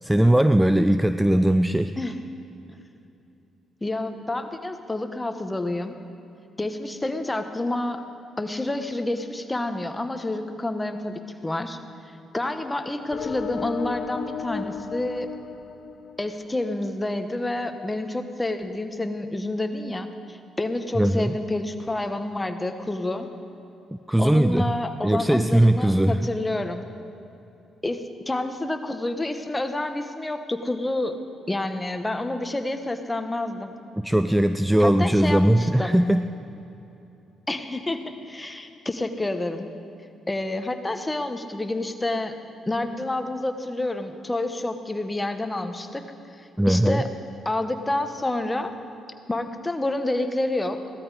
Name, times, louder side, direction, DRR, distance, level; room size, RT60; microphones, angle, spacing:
voice 1, 0.0-1.9 21.0-21.3 23.9-24.7 25.0-26.3 34.0-36.2 46.6-47.0, right 1 dB, 5° right, 11 dB, 0.4 m, -20 dB
voice 2, 2.0-2.3 3.8-5.9 6.6-8.0 8.4-11.8 12.3-15.3 16.2-23.3 24.2-26.8 27.8-31.2 31.5-33.7 34.8-36.0 37.5-39.7 40.3-42.3 42.7-46.0 46.7-47.1 47.4-48.7 49.3-50.8, left 2 dB, 15° left, 7 dB, 1.1 m, -28 dB
sound 1, 13.1-16.7, left 6 dB, 60° left, 0.7 m, -34 dB
17.0 x 13.0 x 4.9 m, 2.9 s
cardioid pair, 90°, 0 cm